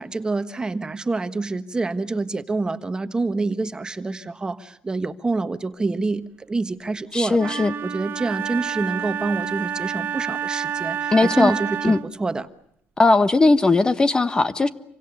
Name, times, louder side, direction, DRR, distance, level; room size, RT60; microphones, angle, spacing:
voice 1, 0.0-7.5 7.8-12.5, right 3 dB, 20° right, 10 dB, 1.4 m, -27 dB
voice 2, 7.1-7.7 11.1-11.6 11.8-12.0 13.0-14.7, left 3 dB, 20° left, 12 dB, 1.3 m, -18 dB
Wind instrument woodwind instrument, 7.3-12.2, right 8 dB, 60° right, 1.5 m, -29 dB
28.0 x 24.5 x 6.7 m, 0.75 s
cardioid pair, 120°, 4 cm